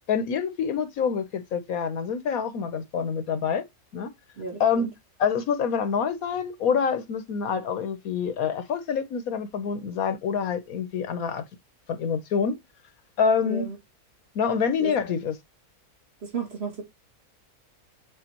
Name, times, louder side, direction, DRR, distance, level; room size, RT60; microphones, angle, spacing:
voice 1, 0.1-3.6 3.9-4.1 4.6-4.9 5.2-11.4 11.9-12.5 13.2-13.7 14.3-15.3, left 6 dB, 70° left, 1.3 m, -26 dB
voice 2, 4.4-4.9 13.5-13.8 14.8-15.0 16.2-16.8, right 5 dB, 40° right, 2.6 m, -33 dB
7.7 x 4.5 x 2.9 m
omnidirectional pair, 1.6 m